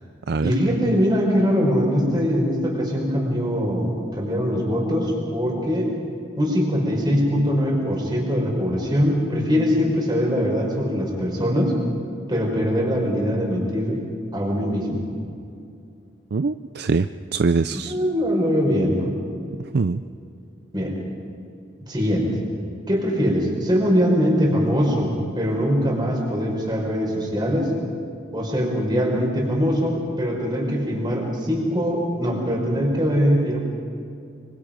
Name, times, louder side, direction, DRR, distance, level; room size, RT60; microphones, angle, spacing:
voice 1, 0.4-5.9 6.4-11.7 12.3-14.0 14.3-15.0 17.7-19.1 20.7-21.0 21.9-22.3 22.9-27.7 28.3-33.6, equal, 20° right, -1 dB, 5.0 m, -22 dB
voice 2, 16.3-17.9 19.7-20.0, right 4 dB, 55° right, 11 dB, 0.4 m, -23 dB
25.0 x 24.5 x 5.2 m, 2.5 s
head